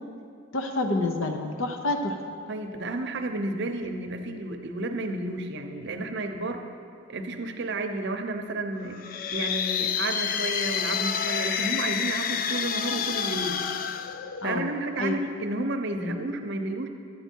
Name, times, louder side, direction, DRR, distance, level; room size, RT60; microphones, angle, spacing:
voice 1, 0.5-2.2 14.4-15.2, left 2 dB, 75° left, 4 dB, 0.8 m, -28 dB
voice 2, 2.5-6.6 7.1-9.0 9.3-13.6 14.4-16.9, right 2 dB, 55° right, 5 dB, 0.7 m, -31 dB
sound 1, 8.9-14.9, left 7 dB, 45° left, 0.3 m, -29 dB
11.5 x 7.9 x 4.5 m, 2.4 s
head